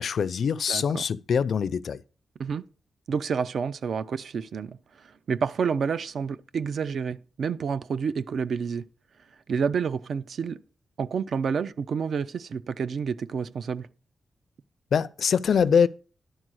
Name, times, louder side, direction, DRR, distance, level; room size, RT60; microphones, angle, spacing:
voice 1, 0.0-2.0 14.9-15.9, left 7 dB, 60° left, 0.4 m, -23 dB
voice 2, 0.7-1.1 2.4-2.6 3.1-8.9 9.5-10.6 11.0-13.9, right 6 dB, 60° right, 0.4 m, -29 dB
11.0 x 4.5 x 6.3 m
wide cardioid pair, 170°, 0 cm